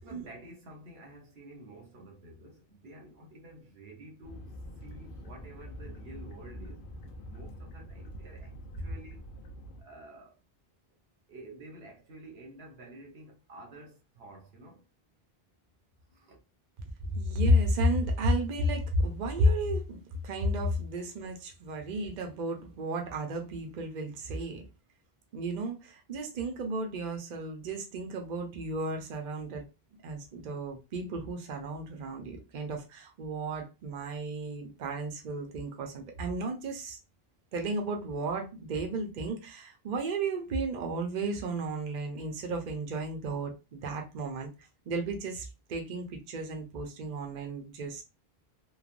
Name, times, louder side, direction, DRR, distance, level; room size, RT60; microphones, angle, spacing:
voice 1, 0.0-6.9 7.3-9.3 9.8-10.4 11.3-14.9 16.1-16.4, right 1 dB, 80° right, 1.1 m, -50 dB
sound 1, 4.2-9.8, equal, 65° left, 0.7 m, -45 dB
voice 2, 17.1-20.0 20.2-24.6 25.3-29.7 30.0-37.0 37.5-44.5 44.9-48.0, equal, 55° right, 0.7 m, -32 dB
3.2 x 2.1 x 2.4 m
omnidirectional pair, 1.0 m